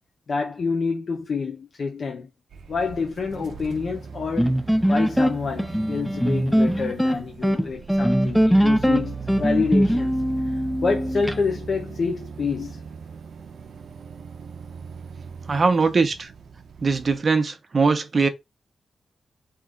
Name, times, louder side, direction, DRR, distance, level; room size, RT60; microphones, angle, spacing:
voice 1, 0.3-2.3 2.7-4.5 4.9-10.1 10.8-12.8, left 4 dB, 55° left, 0.8 m, -27 dB
sound 1, 2.5-17.2, right 5 dB, 70° right, 0.6 m, -39 dB
sound 2, 4.4-11.4, equal, ahead, 0.4 m, -21 dB
voice 2, 15.5-16.3 16.8-18.3, right 4 dB, 45° right, 0.8 m, -21 dB
3.7 x 3.0 x 3.7 m
cardioid pair, 95°, 0 cm